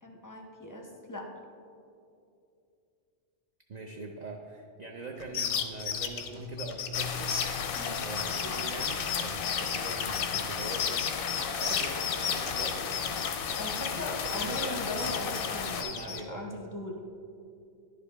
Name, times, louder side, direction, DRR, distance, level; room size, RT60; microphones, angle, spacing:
voice 1, 0.0-1.3 7.7-8.0 13.6-17.0, left 2 dB, 25° left, 0 dB, 0.5 m, -39 dB
voice 2, 3.7-7.3 8.0-11.1 11.5-13.0 14.1-15.4 15.7-16.4, right 3 dB, 50° right, 1 dB, 0.5 m, -42 dB
sound 1, 5.2-14.0 14.2-16.2, left 8 dB, 85° left, 0.9 m, -33 dB
Keyboard (musical), 6.4-9.3, left 6 dB, 85° right, 1.3 m, -45 dB
sound 2, 6.9-15.8, left 6 dB, 60° left, 0.6 m, -34 dB
10.5 x 5.0 x 3.3 m, 2.6 s
omnidirectional pair, 1.2 m